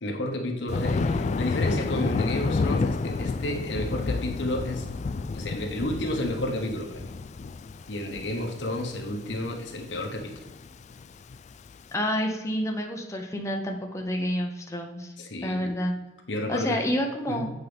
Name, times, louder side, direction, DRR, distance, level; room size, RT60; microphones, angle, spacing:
voice 1, 0.0-4.9 5.3-7.1 7.9-10.3 15.2-15.7 16.3-16.8 17.3-17.5, left 1 dB, 85° left, 2 dB, 1.3 m, -31 dB
Thunder, 0.7-11.8, left 3 dB, 40° left, 0.3 m, -30 dB
voice 2, 11.9-15.1 15.4-15.9 16.5-17.5, equal, 15° left, 1 dB, 0.8 m, -29 dB
8.3 x 5.6 x 3.4 m, 1.1 s
head